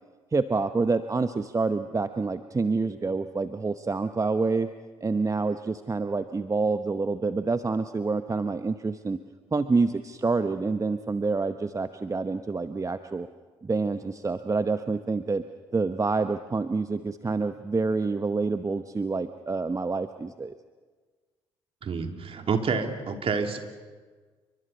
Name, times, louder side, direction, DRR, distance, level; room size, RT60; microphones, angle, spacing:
voice 1, 0.3-4.7 5.0-9.2 9.5-13.3 13.6-15.4 15.7-20.5, right 4 dB, 25° right, 10 dB, 1.0 m, -27 dB
voice 2, 21.8-23.6, right 5 dB, 45° right, 5 dB, 2.9 m, -28 dB
29.5 x 24.0 x 5.5 m, 1.4 s
figure-of-eight pair, 45°, 13 cm